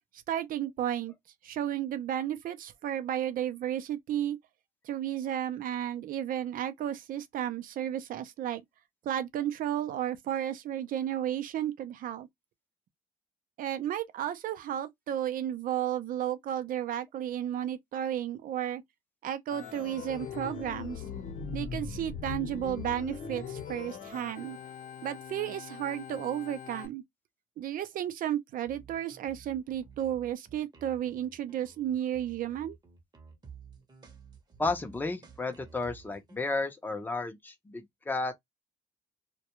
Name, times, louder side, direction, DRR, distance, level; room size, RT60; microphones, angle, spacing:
voice 1, 0.3-1.1 1.4-4.4 4.8-8.6 9.0-12.3 13.6-18.8 19.2-21.0 21.5-24.6 25.0-27.0 27.6-32.8, right 11 dB, 55° right, 0.5 m, -33 dB
Organ, 19.5-26.9, left 6 dB, 50° left, 0.8 m, -40 dB
sound 1, 28.6-36.4, right 6 dB, 25° right, 0.8 m, -53 dB
voice 2, 34.6-38.4, left 3 dB, 10° left, 0.5 m, -33 dB
2.3 x 2.2 x 2.9 m
cardioid pair, 110°, 17 cm